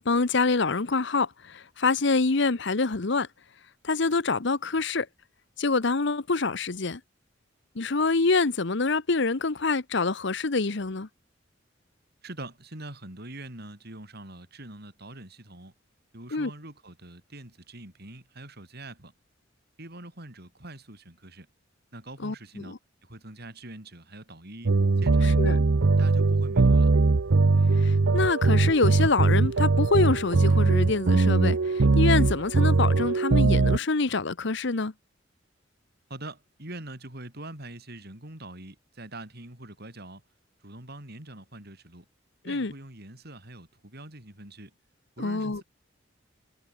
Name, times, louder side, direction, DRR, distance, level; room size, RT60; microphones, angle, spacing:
voice 1, 0.0-3.3 3.8-5.1 5.6-7.0 7.8-11.1 16.3-16.5 22.2-22.3 22.7-22.8 25.4-25.6 27.8-34.9 42.5-42.7 45.2-45.6, left 3 dB, 65° left, 1.0 m, -26 dB
voice 2, 12.2-15.7 16.1-19.1 19.8-21.5 21.9-22.7 23.0-25.6 26.0-26.9 36.1-40.2 40.6-42.0 42.4-44.7 45.2-45.6, right 1 dB, 55° right, 6.6 m, -43 dB
sound 1, 24.7-33.8, right 3 dB, 80° right, 0.7 m, -21 dB
head